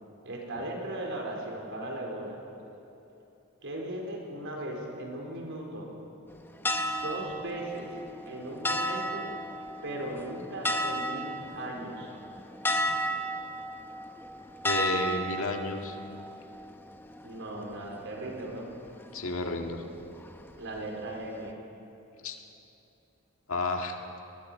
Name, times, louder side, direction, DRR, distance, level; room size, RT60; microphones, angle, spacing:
voice 1, 0.2-2.4 3.6-5.9 7.0-7.9 8.3-9.3 9.8-12.1 17.2-18.7 20.6-21.5, right 1 dB, 60° right, 0 dB, 4.2 m, -37 dB
sound 1, 6.3-21.5, equal, 10° left, 0.8 m, -34 dB
voice 2, 14.6-16.0 19.1-19.8 22.2-22.4 23.5-24.0, left 2 dB, 65° left, 3 dB, 1.9 m, -31 dB
22.5 x 20.5 x 5.6 m, 2.9 s
head